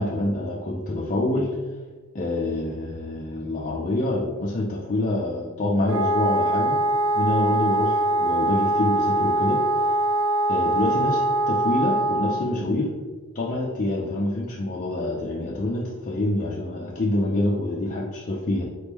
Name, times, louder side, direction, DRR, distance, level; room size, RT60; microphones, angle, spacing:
voice 1, 0.0-1.5 2.1-6.8 7.2-9.6 10.5-12.9 13.3-18.6, left 1 dB, 35° left, -4 dB, 0.4 m, -26 dB
Wind instrument woodwind instrument, 5.9-12.5, right 1 dB, 65° right, 0.5 m, -23 dB
4.0 x 3.1 x 3.5 m, 1.4 s
head